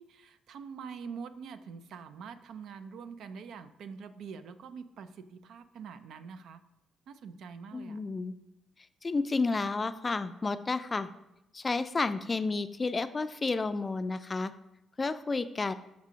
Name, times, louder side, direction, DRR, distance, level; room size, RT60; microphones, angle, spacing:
voice 1, 0.0-6.6 7.1-8.0, right 6 dB, 75° right, 11 dB, 0.4 m, -45 dB
voice 2, 7.7-8.3 9.0-11.1 11.5-14.5 15.0-15.7, left 3 dB, 30° left, 12 dB, 0.3 m, -31 dB
6.1 x 6.0 x 2.8 m, 0.87 s
cardioid pair, 90°, 0 cm